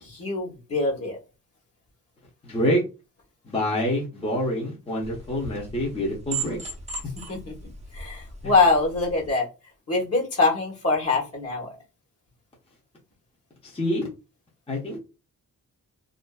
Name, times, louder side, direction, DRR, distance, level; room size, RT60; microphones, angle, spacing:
voice 1, 0.0-1.2 7.3-7.5 7.9-9.5 9.9-11.7, left 3 dB, 45° left, 0 dB, 1.0 m, -24 dB
voice 2, 2.4-2.8 3.4-6.6 8.4-8.5 13.6-14.1 14.7-15.0, equal, 15° left, -2 dB, 0.7 m, -26 dB
sound 1, 5.0-9.3, right 4 dB, 20° right, 0.6 m, -37 dB
2.5 x 2.4 x 2.2 m, 0.29 s
wide cardioid pair, 125°, 33 cm